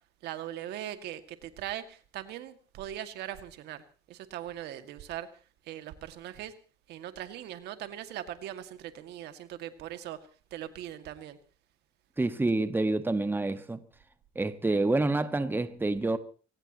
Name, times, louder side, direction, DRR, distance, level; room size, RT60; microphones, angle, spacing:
voice 1, 0.2-3.8 4.1-5.3 5.6-6.5 6.9-10.2 10.5-11.4, right 12 dB, 80° right, 2.1 m, -40 dB
voice 2, 12.2-13.8 14.3-16.2, right 2 dB, 10° right, 1.4 m, -27 dB
24.0 x 18.5 x 3.0 m
cardioid pair, 110°, 17 cm